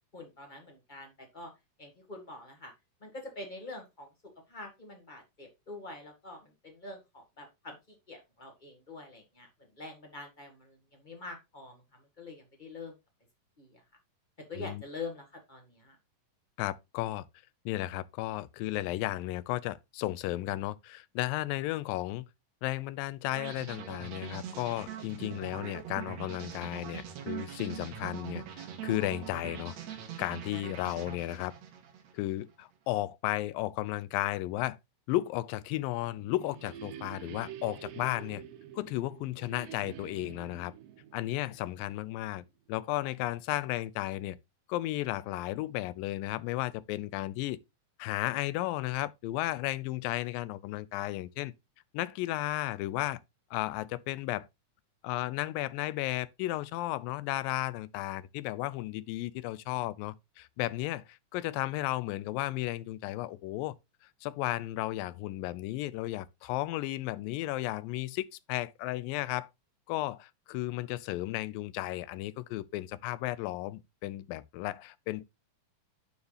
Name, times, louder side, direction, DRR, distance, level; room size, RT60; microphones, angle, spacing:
voice 1, 0.1-1.5 1.8-2.7 3.0-4.1 4.5-12.9 13.6-13.8 14.5-16.0, left 3 dB, 25° left, 0.9 m, -45 dB
voice 2, 16.6-17.3 17.7-22.3 22.6-29.8 30.2-31.5 32.1-34.8 35.1-38.4 38.7-40.7 41.1-42.4 42.7-44.4 44.7-47.6 48.0-51.5 51.9-53.2 53.5-54.5 55.0-63.7 64.2-69.5 69.9-75.2, left 16 dB, 90° left, 2.3 m, -34 dB
sound 1, 23.4-32.4, right 9 dB, 60° right, 2.2 m, -42 dB
sound 2, 35.9-42.4, right 10 dB, 85° right, 2.6 m, -48 dB
9.2 x 4.8 x 3.3 m
omnidirectional pair, 4.0 m